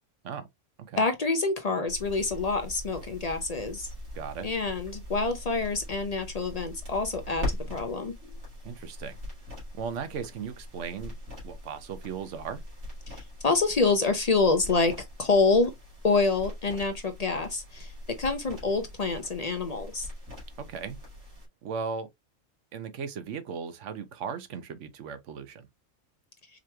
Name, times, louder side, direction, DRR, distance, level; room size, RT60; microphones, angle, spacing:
voice 1, 1.0-3.9 4.4-8.1 13.1-14.9 15.2-15.7 16.0-20.1, left 3 dB, 45° left, 0.5 m, -27 dB
sound 1, 1.9-21.5, left 1 dB, 90° right, 2.4 m, -41 dB
voice 2, 4.1-4.5 8.6-9.2 9.7-11.2 11.4-12.6 20.6-21.0 21.6-22.1 22.7-25.7, right 6 dB, 70° right, 1.0 m, -37 dB
4.9 x 3.0 x 2.2 m
omnidirectional pair, 1.3 m